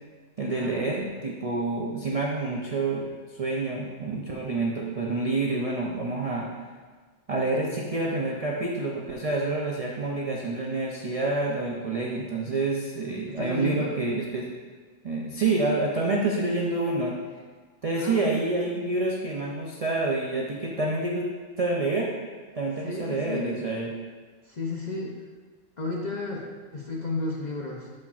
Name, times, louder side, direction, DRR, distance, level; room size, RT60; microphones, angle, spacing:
voice 1, 0.4-3.1 3.4-6.5 7.3-14.5 15.0-17.2 17.8-21.3 21.6-22.1 22.5-23.9, right 2 dB, 55° right, -2 dB, 0.4 m, -28 dB
voice 2, 13.3-14.0 18.0-18.4 22.8-23.7 24.4-25.2 25.8-27.9, left 3 dB, 45° left, -2 dB, 0.6 m, -33 dB
11.0 x 4.3 x 2.4 m, 1.5 s
omnidirectional pair, 1.4 m